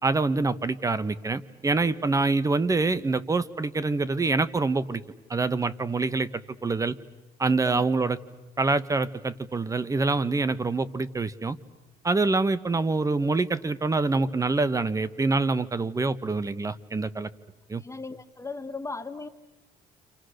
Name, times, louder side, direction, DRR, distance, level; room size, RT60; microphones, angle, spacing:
voice 1, 0.0-5.0 5.3-6.9 7.4-8.2 8.6-11.6 12.0-17.3 17.7-17.8, right 3 dB, 20° right, 16 dB, 1.1 m, -25 dB
voice 2, 17.8-19.3, left 3 dB, 15° left, 9 dB, 0.9 m, -37 dB
29.5 x 27.5 x 6.5 m, 1.1 s
cardioid pair, 110°, 17 cm